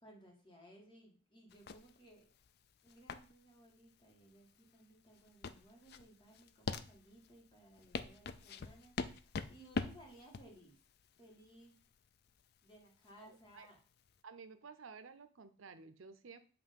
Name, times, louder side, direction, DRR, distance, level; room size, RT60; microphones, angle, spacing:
voice 1, 0.0-2.3 2.8-10.8 11.2-11.8 12.6-13.8, right 1 dB, 25° left, -1 dB, 1.8 m, -61 dB
sound 1, 1.5-14.2, left 4 dB, 50° left, 0.4 m, -45 dB
voice 2, 13.2-13.7 14.2-16.4, right 5 dB, 85° right, 10 dB, 0.7 m, -54 dB
7.8 x 3.2 x 5.2 m, 0.39 s
head